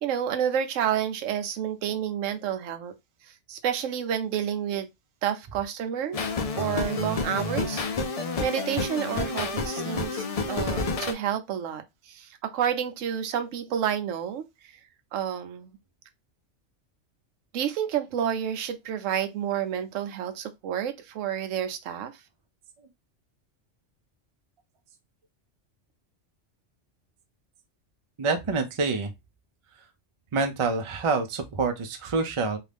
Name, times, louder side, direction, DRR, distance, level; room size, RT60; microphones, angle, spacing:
voice 1, 0.0-2.9 3.5-4.9 5.2-6.2 6.6-14.8 15.1-15.8 17.5-22.1, right 9 dB, 85° right, 1.0 m, -30 dB
sound 1, 6.1-11.1, left 3 dB, 60° left, 0.3 m, -29 dB
voice 2, 28.2-29.1 30.3-32.6, right 4 dB, 50° right, 0.3 m, -27 dB
2.7 x 2.4 x 3.3 m
omnidirectional pair, 1.3 m